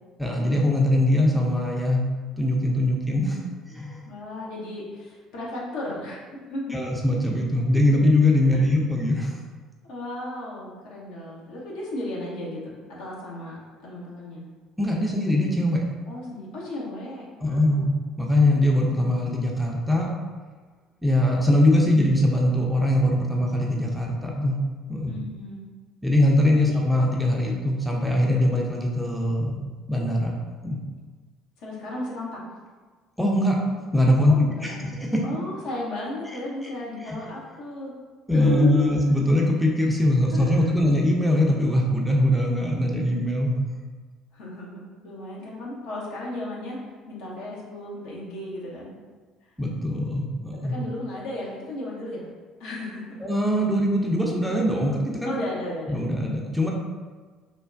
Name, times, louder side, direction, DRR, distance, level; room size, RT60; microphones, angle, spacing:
voice 1, 0.2-2.1 2.4-3.4 3.7-4.0 6.7-9.3 14.8-15.8 17.4-17.9 18.2-20.1 21.0-24.6 24.9-25.1 26.0-29.6 29.9-30.3 30.6-30.8 33.2-33.6 33.9-34.3 34.6-34.8 35.0-35.2 37.1-37.2 38.3-43.6 49.6-50.8 53.2-55.3 55.9-56.7, left 1 dB, ahead, -2 dB, 0.5 m, -22 dB
voice 2, 4.1-6.8 8.5-8.8 9.8-13.6 13.8-14.5 16.1-17.9 25.0-25.6 26.6-26.8 31.6-32.4 34.3-37.9 38.3-39.3 40.3-40.8 44.3-46.8 47.1-48.9 50.5-52.3 52.6-53.3 55.2-55.9, left 2 dB, 65° left, -4 dB, 0.7 m, -34 dB
3.2 x 2.1 x 2.5 m, 1.4 s
figure-of-eight pair, 55°, 0 cm